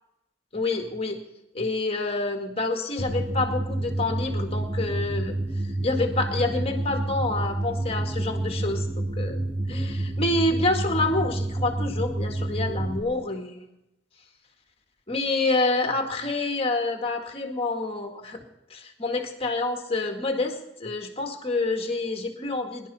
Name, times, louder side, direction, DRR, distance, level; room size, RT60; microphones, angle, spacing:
voice 1, 0.5-1.2 1.5-5.4 5.8-9.4 9.7-13.7 15.1-18.4 18.7-22.9, left 2 dB, 30° left, 4 dB, 1.8 m, -27 dB
sound 1, 3.0-13.0, right 1 dB, 25° right, 1.5 m, -29 dB
23.5 x 11.0 x 4.2 m, 0.87 s
head